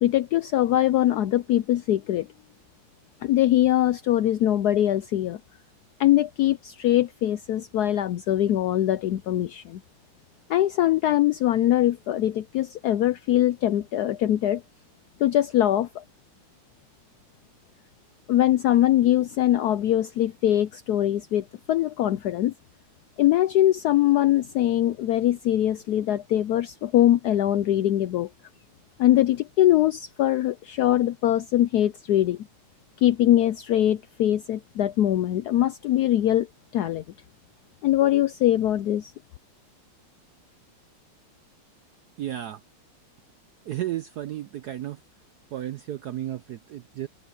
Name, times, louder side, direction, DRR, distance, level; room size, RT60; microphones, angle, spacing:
voice 1, 0.0-2.3 3.2-5.4 6.0-9.8 10.5-14.6 15.2-16.0 18.3-22.5 23.2-28.3 29.0-32.4 33.0-36.5 36.7-37.0 37.8-39.1, left 13 dB, 80° left, 0.8 m, -22 dB
voice 2, 42.2-42.6 43.6-45.0 45.5-47.1, right 13 dB, 75° right, 0.9 m, -33 dB
omnidirectional pair, 2.3 m